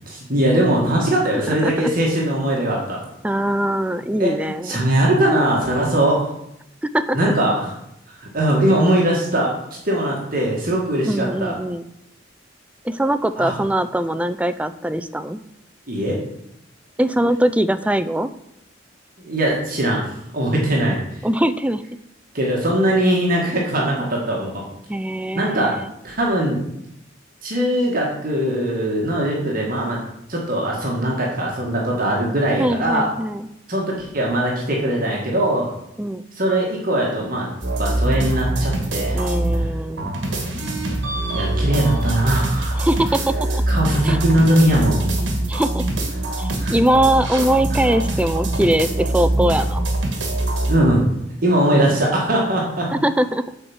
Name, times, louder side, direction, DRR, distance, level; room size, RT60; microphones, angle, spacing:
voice 1, 0.1-3.0 4.2-6.3 7.1-7.7 8.3-9.5 9.8-11.5 13.4-13.5 15.9-16.1 19.2-20.0 20.3-21.0 22.3-24.6 25.3-25.7 26.0-26.6 27.4-30.0 30.3-33.1 33.7-35.6 36.4-37.5 37.8-39.2 41.3-42.8 43.7-45.0 46.6-46.7 50.7-51.0 51.4-52.8, right 1 dB, 50° right, -2 dB, 1.9 m, -20 dB
voice 2, 1.3-1.9 3.2-4.8 6.9-7.3 11.1-11.8 12.8-15.4 17.0-18.3 21.2-21.8 24.9-25.9 32.6-33.5 36.0-36.2 39.1-40.1 42.7-43.6 44.0-44.2 45.5-45.8 46.4-49.9 52.9-53.5, right 1 dB, 5° right, 12 dB, 0.4 m, -21 dB
sound 1, 37.6-39.7 40.0-50.8, right 1 dB, 65° right, 1.8 m, -23 dB
8.0 x 4.8 x 7.2 m, 0.79 s
head